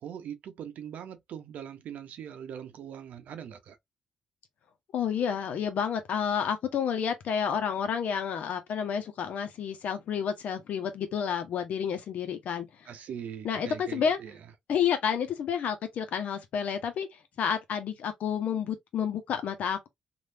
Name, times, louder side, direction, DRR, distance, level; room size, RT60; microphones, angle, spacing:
voice 1, 0.0-3.8 12.9-14.4, right 8 dB, 75° right, 0.6 m, -41 dB
voice 2, 4.9-12.9 13.4-14.2 14.7-17.1 17.4-19.9, left 7 dB, 70° left, 0.9 m, -30 dB
3.3 x 2.6 x 2.6 m
cardioid pair, 70°, 3 cm